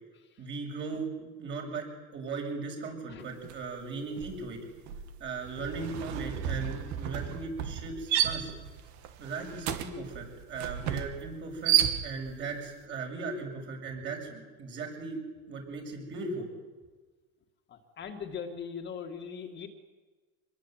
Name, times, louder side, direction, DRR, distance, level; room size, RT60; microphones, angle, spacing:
voice 1, 0.4-1.8 2.1-4.6 5.2-8.5 9.2-11.7 12.0-15.2 15.5-16.5, right 4 dB, 35° right, 2 dB, 7.6 m, -38 dB
sound 1, 3.4-3.7 4.0-12.5, right 10 dB, 65° right, 2.6 m, -32 dB
voice 2, 17.7-19.7, left 6 dB, 35° left, 3 dB, 2.2 m, -40 dB
26.5 x 21.5 x 9.3 m, 1.3 s
cardioid pair, 160°, 31 cm